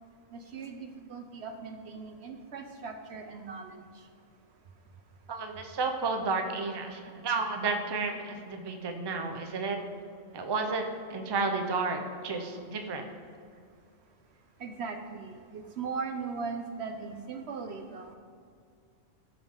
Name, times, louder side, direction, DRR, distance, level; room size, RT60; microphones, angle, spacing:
voice 1, 0.3-3.9 14.6-18.2, right 5 dB, 65° right, 5 dB, 0.9 m, -39 dB
voice 2, 5.3-9.8 10.3-13.0, right 4 dB, 25° right, 5 dB, 0.6 m, -32 dB
14.5 x 5.4 x 3.7 m, 2.3 s
omnidirectional pair, 1.3 m